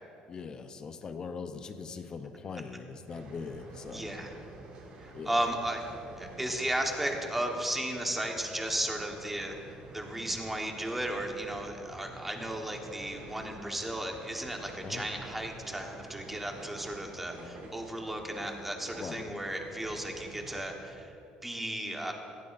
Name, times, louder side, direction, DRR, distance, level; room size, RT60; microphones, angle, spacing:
voice 1, 0.3-4.1 5.1-5.4 14.8-15.0 18.9-19.3, left 5 dB, 35° left, 9 dB, 0.7 m, -41 dB
sound 1, 3.1-20.7, right 2 dB, 55° right, 2.1 m, -49 dB
voice 2, 3.9-4.3 5.0-5.8 6.2-9.5 9.9-21.1 21.4-22.1, right 1 dB, 10° right, 2 dB, 1.3 m, -34 dB
17.5 x 14.0 x 2.6 m, 2.8 s
cardioid pair, 130°, 2 cm